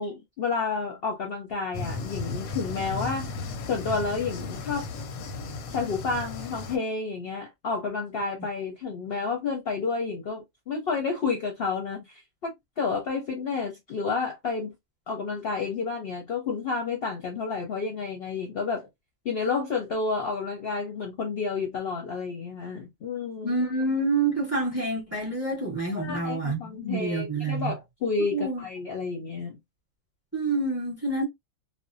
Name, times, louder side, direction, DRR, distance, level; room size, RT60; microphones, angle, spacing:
voice 1, 0.0-3.3 3.7-4.9 5.7-14.7 15.1-18.9 19.2-23.6 25.9-29.6, left 4 dB, 55° left, 0.7 m, -30 dB
sound 1, 1.7-6.8, left 3 dB, 90° left, 1.0 m, -35 dB
voice 2, 23.4-27.7 28.3-28.6 30.3-31.2, right 2 dB, 10° right, 0.9 m, -27 dB
2.5 x 2.0 x 2.5 m
omnidirectional pair, 1.4 m